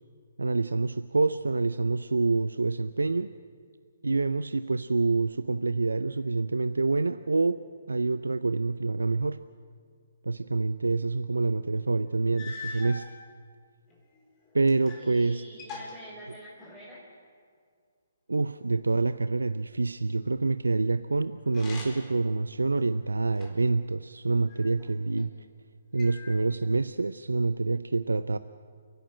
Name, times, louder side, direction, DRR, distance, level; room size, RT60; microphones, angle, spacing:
voice 1, 0.4-3.3 4.0-7.6 7.9-9.4 10.2-13.1 14.5-15.4 18.3-25.3 25.9-28.4, right 3 dB, 85° right, 13 dB, 0.5 m, -27 dB
sound 1, 11.8-11.9 12.3-13.1 13.9-15.1 15.4-16.9 21.5-22.2 22.8-23.8 24.5-25.3 26.0-26.7, left 3 dB, 25° left, 4.4 m, -44 dB
voice 2, 15.0-17.0, equal, 5° left, -9 dB, 4.5 m, -46 dB
30.0 x 11.5 x 8.8 m, 2.1 s
figure-of-eight pair, 140°, 0 cm